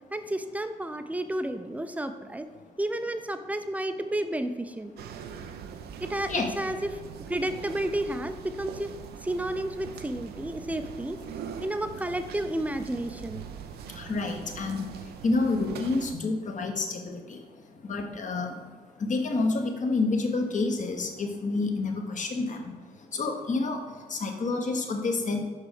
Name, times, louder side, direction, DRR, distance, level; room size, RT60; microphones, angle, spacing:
voice 1, 0.1-2.5 2.8-4.9 6.0-6.9 7.3-8.9 9.2-11.2 11.6-13.4, right 1 dB, 10° right, 9 dB, 0.6 m, -31 dB
sound 1, 5.0-16.2, right 8 dB, 55° right, 0.5 m, -42 dB
voice 2, 14.0-14.9 15.2-17.4 17.8-18.6 19.0-22.7 23.1-23.8 24.1-25.4, left 3 dB, 40° left, 4 dB, 1.1 m, -28 dB
5.9 x 4.7 x 5.0 m, 1.4 s
figure-of-eight pair, 40°, 19 cm